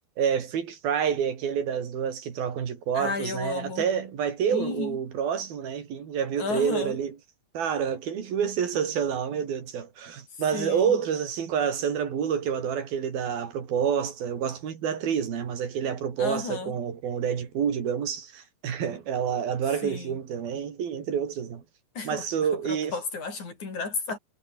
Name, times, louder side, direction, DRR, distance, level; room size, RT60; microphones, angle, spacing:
voice 1, 0.2-7.2 7.5-21.6 22.0-22.9, right 7 dB, 75° right, 4.9 m, -28 dB
voice 2, 2.9-3.9 4.5-5.0 6.4-7.0 10.5-11.0 16.2-16.8 19.8-20.2 21.9-22.3 22.6-24.2, left 4 dB, 50° left, 6.5 m, -33 dB
omnidirectional pair, 4.3 m